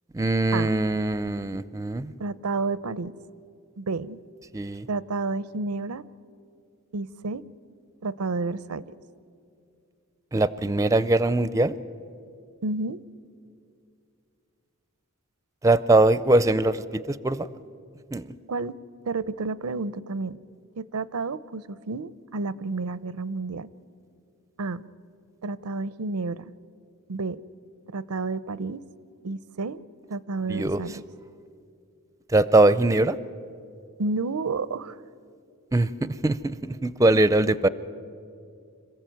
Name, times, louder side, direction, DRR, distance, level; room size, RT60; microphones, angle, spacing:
voice 1, 0.1-2.1 4.5-4.9 10.3-11.7 15.6-17.5 18.1-18.3 30.5-30.8 32.3-33.2 35.7-35.9 36.2-37.7, right 2 dB, 15° right, 16 dB, 0.4 m, -21 dB
voice 2, 2.2-3.1 3.8-4.2 4.9-6.1 6.9-7.4 8.0-8.9 12.6-13.0 18.5-18.7 19.1-20.4 20.8-23.7 24.6-24.8 25.4-26.5 27.1-27.4 27.9-28.8 29.2-29.8 30.1-31.0 34.0-35.0, right 3 dB, 90° right, 18 dB, 0.6 m, -30 dB
26.5 x 15.0 x 9.2 m, 2.4 s
head